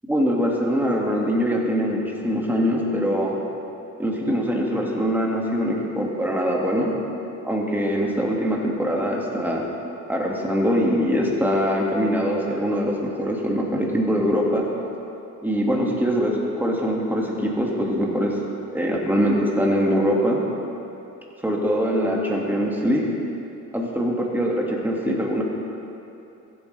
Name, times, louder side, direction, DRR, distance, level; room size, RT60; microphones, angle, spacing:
voice 1, 0.1-3.4 4.0-6.9 7.4-9.6 10.1-14.6 15.4-18.4 18.7-20.4 21.4-23.0 23.7-25.4, equal, 5° right, -2 dB, 1.9 m, -23 dB
15.0 x 8.1 x 3.3 m, 2.9 s
cardioid pair, 90°, 30 cm